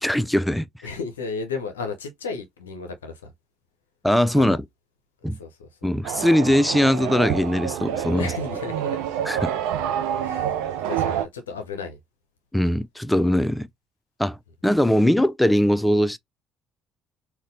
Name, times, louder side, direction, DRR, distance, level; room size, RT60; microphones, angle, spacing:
voice 1, 0.0-0.7 4.0-4.6 5.2-5.4 5.8-8.3 9.3-9.5 12.5-13.7 14.2-14.4 14.6-16.2, equal, 5° left, 0.3 m, -20 dB
voice 2, 0.8-3.3 4.3-4.6 5.3-5.7 8.1-9.0 10.2-12.0, left 4 dB, 80° left, 0.5 m, -34 dB
sound 1, 6.0-11.3, right 10 dB, 70° right, 0.4 m, -27 dB
3.9 x 2.1 x 2.6 m
figure-of-eight pair, 55°, 0 cm